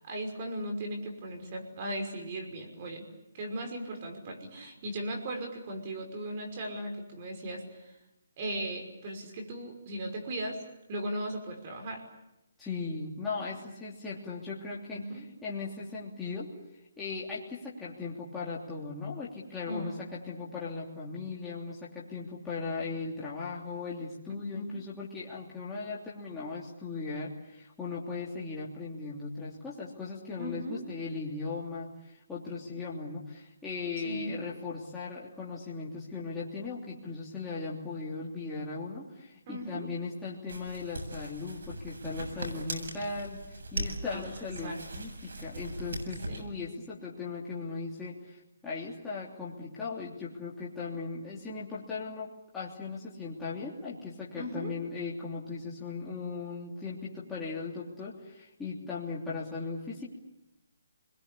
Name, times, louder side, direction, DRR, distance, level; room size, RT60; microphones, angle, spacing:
voice 1, 0.0-3.1 3.3-8.0 8.4-10.6 10.9-12.0 13.3-13.4 14.9-15.3 19.7-20.1 24.3-24.8 30.4-30.8 34.0-34.3 39.5-39.9 44.1-44.3 44.6-44.8 46.3-46.6 54.3-54.7, right 1 dB, 35° right, 4 dB, 5.7 m, -37 dB
voice 2, 12.6-15.0 15.4-16.5 17.0-60.1, left 4 dB, 5° left, -8 dB, 3.2 m, -38 dB
sound 1, 40.5-46.4, right 2 dB, 75° right, 7.5 m, -40 dB
29.0 x 22.0 x 8.5 m, 0.88 s
hypercardioid pair, 160°, 0 cm